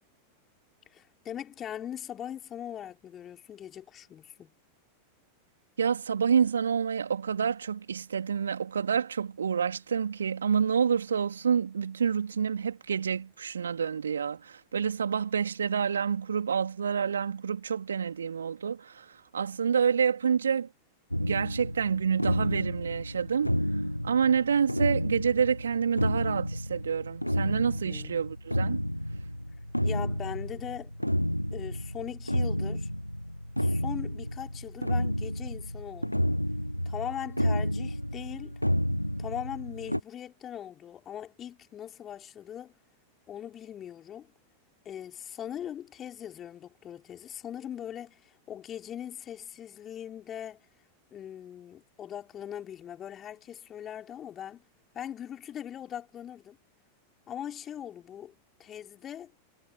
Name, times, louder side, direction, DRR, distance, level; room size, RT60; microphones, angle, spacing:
voice 1, 0.9-4.5 27.7-28.3 29.8-30.9 31.5-32.9 33.6-36.3 36.8-38.5 39.2-42.7 43.3-44.3 44.8-50.6 51.1-54.6 54.9-56.6 57.3-58.3 58.6-59.3, left 10 dB, 25° left, 4.4 m, -40 dB
voice 2, 5.8-20.7 21.2-23.5 24.0-28.8, right 7 dB, 70° right, 3.6 m, -28 dB
sound 1, 21.1-40.0, equal, 90° left, 1.1 m, -31 dB
figure-of-eight pair, 90°, 0 cm